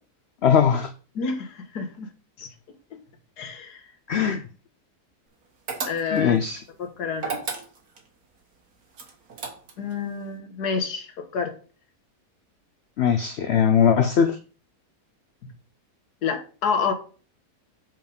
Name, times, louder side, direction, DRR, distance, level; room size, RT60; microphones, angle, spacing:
voice 1, 0.4-0.9 4.1-4.4 6.1-6.6 13.0-14.4, left 7 dB, 65° left, 0.6 m, -20 dB
voice 2, 1.2-2.1 2.4-2.5 3.4-3.8 5.9-6.4 6.8-7.4 9.8-11.5 16.2-16.9, left 5 dB, 90° left, 1.8 m, -28 dB
sound 1, 5.7-6.4 7.2-8.1 8.9-9.9, right 4 dB, 70° right, 1.9 m, -33 dB
7.4 x 4.6 x 5.2 m
omnidirectional pair, 1.6 m